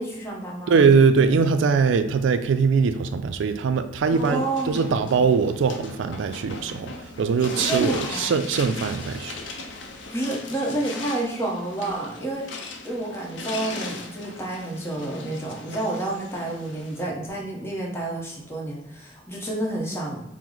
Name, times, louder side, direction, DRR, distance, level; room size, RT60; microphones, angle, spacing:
voice 1, 0.0-0.8 4.1-5.1 7.7-8.3 10.1-20.2, right 2 dB, 15° left, 0.8 m, -29 dB
voice 2, 0.7-9.4, right 5 dB, 90° right, 0.3 m, -21 dB
sound 1, 4.1-17.1, left 3 dB, 85° left, 0.6 m, -37 dB
4.6 x 2.0 x 3.8 m
head